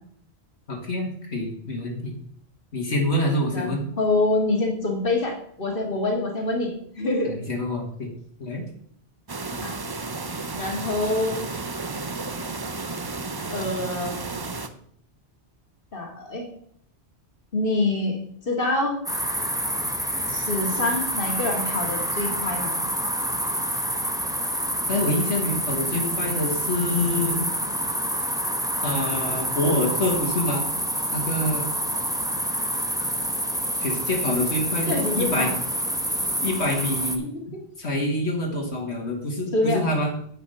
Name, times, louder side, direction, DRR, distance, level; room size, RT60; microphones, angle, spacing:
voice 1, 0.7-2.1 2.7-3.8 7.2-8.1 8.4-8.6 24.9-27.5 28.8-30.6 31.1-31.7 33.8-35.5 36.4-37.3 37.8-40.1, left 1 dB, 75° left, 0 dB, 2.2 m, -26 dB
voice 2, 3.5-6.7 7.0-7.3 9.6-9.8 10.6-11.5 13.5-14.2 15.9-16.5 17.5-18.2 18.4-19.0 20.3-22.7 34.9-35.5 37.2-37.6 39.5-39.8, left 2 dB, 50° left, 0 dB, 2.2 m, -25 dB
sound 1, 9.3-14.7, right 3 dB, 25° right, 0.6 m, -32 dB
sound 2, 19.1-37.2, equal, 5° right, 0.9 m, -27 dB
9.5 x 5.7 x 6.8 m, 0.65 s
omnidirectional pair, 1.2 m